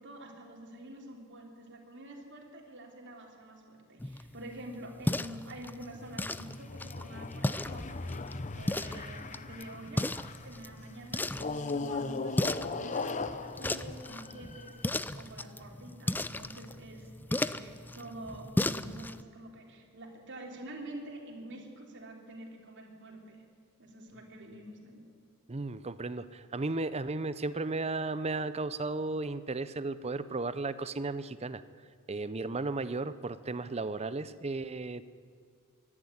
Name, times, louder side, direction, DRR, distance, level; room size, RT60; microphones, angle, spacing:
voice 1, 0.0-10.2 10.4-23.4 23.8-25.0, right 1 dB, 55° right, 1 dB, 3.4 m, -47 dB
sound 1, 4.0-19.2, left 1 dB, 10° left, 0.4 m, -36 dB
sound 2, 5.9-10.6 11.3-14.9, left 3 dB, 35° left, 0.8 m, -39 dB
voice 2, 25.5-31.6 32.1-35.1, right 3 dB, 30° right, 14 dB, 0.7 m, -34 dB
24.0 x 11.0 x 9.7 m, 2.1 s
head